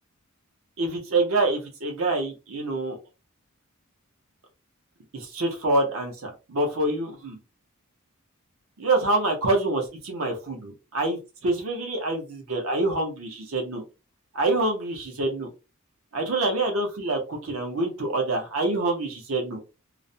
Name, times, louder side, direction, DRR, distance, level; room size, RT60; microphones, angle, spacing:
voice 1, 0.8-3.0 5.1-7.4 8.8-13.8 14.3-15.5 16.1-19.6, right 2 dB, 70° right, 3 dB, 0.7 m, -26 dB
2.4 x 2.0 x 2.6 m, 0.28 s
head